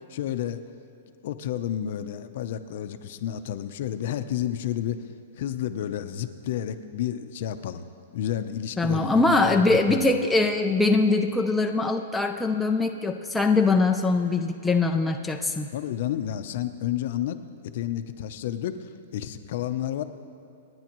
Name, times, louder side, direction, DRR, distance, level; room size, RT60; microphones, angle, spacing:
voice 1, 0.1-0.6 1.2-7.9 8.1-10.1 15.7-17.4 17.7-20.0, left 10 dB, 50° left, 10 dB, 0.7 m, -31 dB
voice 2, 8.8-15.7, left 3 dB, 5° left, 2 dB, 0.4 m, -22 dB
28.0 x 9.7 x 3.1 m, 2.5 s
hypercardioid pair, 165°, 0 cm